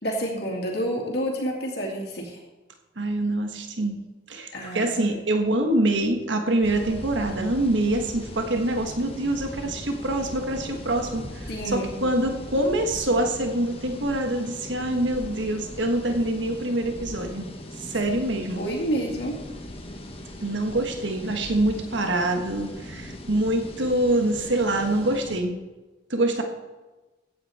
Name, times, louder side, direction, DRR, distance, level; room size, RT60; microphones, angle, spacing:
voice 1, 0.0-2.4 4.5-5.1 11.5-12.0 18.6-19.4, right 1 dB, 55° left, -1 dB, 2.5 m, -29 dB
voice 2, 3.0-4.0 4.3-17.5 17.8-18.6 20.4-25.6 26.1-26.4, right 1 dB, 70° right, 4 dB, 1.4 m, -25 dB
sound 1, 6.6-25.4, left 1 dB, 30° left, 1.4 m, -39 dB
15.5 x 9.2 x 4.3 m, 1.2 s
head